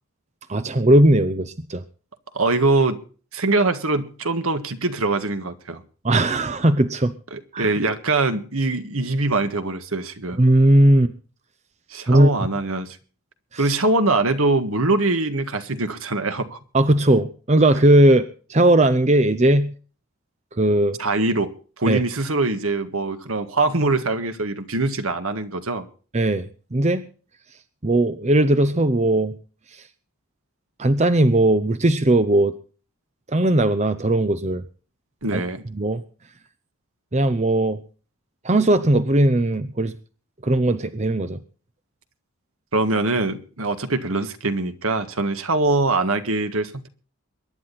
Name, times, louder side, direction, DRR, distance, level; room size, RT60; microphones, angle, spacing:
voice 1, 0.5-1.8 6.0-7.1 7.5-7.7 10.4-11.1 12.1-12.3 13.5-13.7 16.7-19.7 20.5-21.0 21.9-22.0 26.1-27.0 27.8-29.4 29.7-29.8 30.8-32.5 33.3-34.6 35.3-35.4 35.7-36.0 37.1-37.8 38.4-39.9 40.4-41.4, right 1 dB, 30° right, 0.8 m, -18 dB
voice 2, 2.3-3.0 3.3-5.8 7.3-10.4 11.9-13.0 13.6-16.6 21.0-21.5 21.8-25.8 35.2-35.6 42.7-46.9, right 2 dB, 70° right, 1.7 m, -23 dB
22.5 x 10.5 x 4.2 m
head